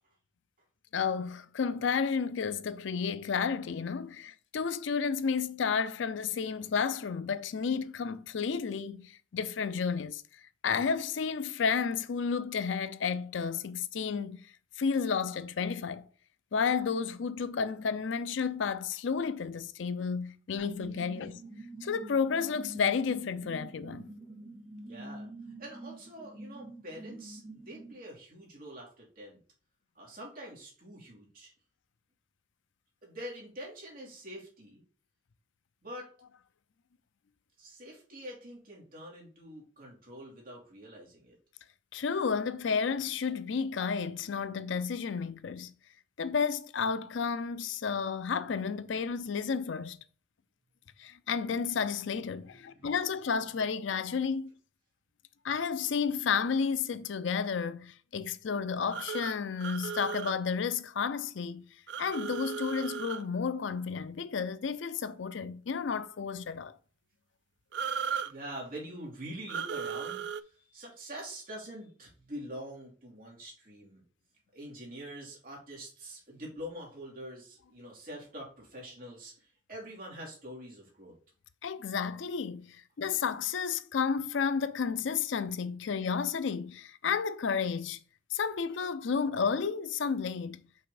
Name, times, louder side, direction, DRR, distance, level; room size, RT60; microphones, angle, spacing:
voice 1, 0.9-10.2 10.6-14.4 14.8-16.1 16.5-21.4 21.8-24.1 41.9-45.7 46.2-50.0 51.0-54.5 55.4-61.7 62.0-66.8 81.6-88.0 88.3-90.6, left 6 dB, 75° left, 0.5 m, -32 dB
sound 1, 20.6-27.9, right 2 dB, 15° right, 2.3 m, -46 dB
voice 2, 24.8-25.3 25.6-29.4 29.9-31.5 33.0-34.8 35.8-36.1 37.6-41.4 52.5-52.9 68.2-74.0 74.5-81.1, equal, 45° right, 2.7 m, -45 dB
sound 2, 58.9-60.4 61.9-63.2 67.7-68.3 69.5-70.4, right 7 dB, 65° right, 0.3 m, -36 dB
5.5 x 3.5 x 4.9 m
head